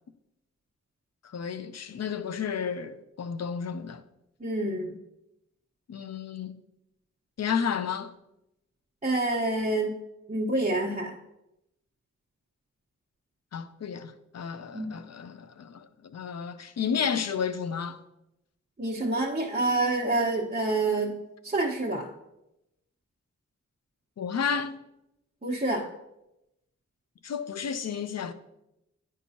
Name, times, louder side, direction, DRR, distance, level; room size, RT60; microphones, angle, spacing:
voice 1, 1.3-4.0 5.9-6.6 7.4-8.1 13.5-18.0 24.2-24.8 27.2-28.3, left 7 dB, 60° left, 0.5 m, -32 dB
voice 2, 4.4-4.9 9.0-9.9 10.3-11.1 14.7-14.9 18.8-21.1 21.4-22.1 25.4-25.8, right 2 dB, 25° right, 1.1 m, -27 dB
9.8 x 4.5 x 2.8 m
wide cardioid pair, 75°, 29 cm